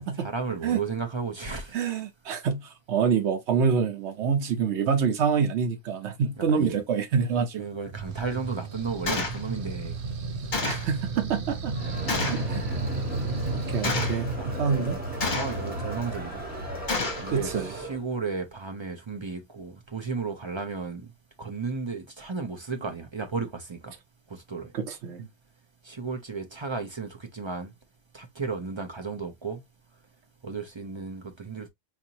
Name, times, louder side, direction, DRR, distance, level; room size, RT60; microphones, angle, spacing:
voice 1, 0.2-1.7 6.4-6.8 7.6-9.9 10.6-10.8 13.6-13.7 14.4-14.9 15.3-16.4 17.2-21.1 21.4-23.9 24.3-24.7 25.8-27.7 28.1-29.6 30.4-31.7, right 4 dB, 30° right, 0.6 m, -34 dB
voice 2, 1.7-7.6 10.6-11.7 12.2-12.6 13.5-15.0 17.3-17.7 24.7-25.3, right 6 dB, 90° right, 1.1 m, -26 dB
sound 1, 7.9-14.1, right 3 dB, 60° right, 0.9 m, -33 dB
Gunshot gunfire, 9.1-9.4 10.5-10.9 12.1-12.5 13.8-14.2 15.2-15.7 16.9-17.3, left 3 dB, 45° left, 1.2 m, -29 dB
Crowd, 11.7-18.0, right 1 dB, 10° right, 1.4 m, -35 dB
4.2 x 2.6 x 2.8 m
omnidirectional pair, 1.1 m